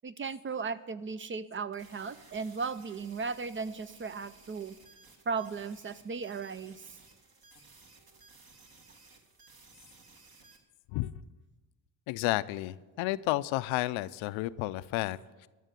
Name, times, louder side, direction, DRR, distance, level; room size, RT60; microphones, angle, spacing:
voice 1, 0.0-4.7 5.3-6.8, right 5 dB, 30° right, 15 dB, 0.4 m, -36 dB
sound 1, 1.7-10.6, right 3 dB, 50° right, 2.2 m, -58 dB
voice 2, 12.1-15.5, left 17 dB, 85° left, 15 dB, 0.6 m, -32 dB
13.0 x 6.4 x 8.2 m, 1.2 s
cardioid pair, 90°, 46 cm